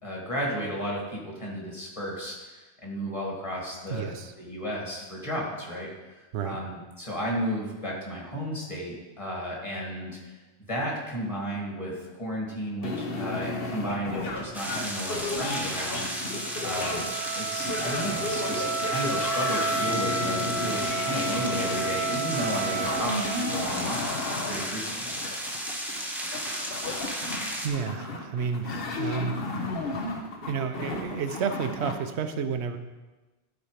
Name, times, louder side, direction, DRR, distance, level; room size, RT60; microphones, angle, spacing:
voice 1, 0.0-5.9 6.4-10.3 10.7-16.1 16.6-24.2 24.4-25.1, equal, 30° left, -3 dB, 2.1 m, -33 dB
voice 2, 3.9-4.3 6.3-6.6 27.6-29.4 30.5-32.8, right 6 dB, 85° right, 8 dB, 1.0 m, -31 dB
sound 1, 12.8-31.9, left 3 dB, 65° left, 1.1 m, -34 dB
sound 2, 14.5-27.7, equal, ahead, 1.0 m, -34 dB
Wind instrument woodwind instrument, 15.9-23.9, right 4 dB, 55° right, 0.9 m, -32 dB
11.5 x 4.4 x 4.9 m, 1.2 s
omnidirectional pair, 1.1 m